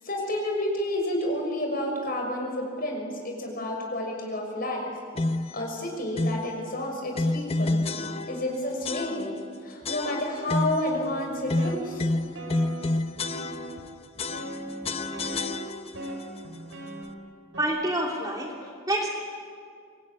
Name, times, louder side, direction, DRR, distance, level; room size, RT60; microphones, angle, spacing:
voice 1, 0.0-4.9 5.5-7.9 8.3-9.4 9.6-12.0, left 1 dB, 45° left, 2 dB, 6.2 m, -30 dB
sound 1, 5.2-5.6 6.2-6.5 7.1-8.5 8.8-9.5 9.8-10.9 11.5-13.9 14.2-16.1, left 2 dB, 30° left, 0.8 m, -29 dB
sound 2, 10.9-13.9 14.3-17.1 17.5-17.6, right 1 dB, 75° right, 5.6 m, -39 dB
voice 2, 17.6-19.1, right 1 dB, 15° right, -1 dB, 3.0 m, -28 dB
25.0 x 21.5 x 9.9 m, 2.2 s
head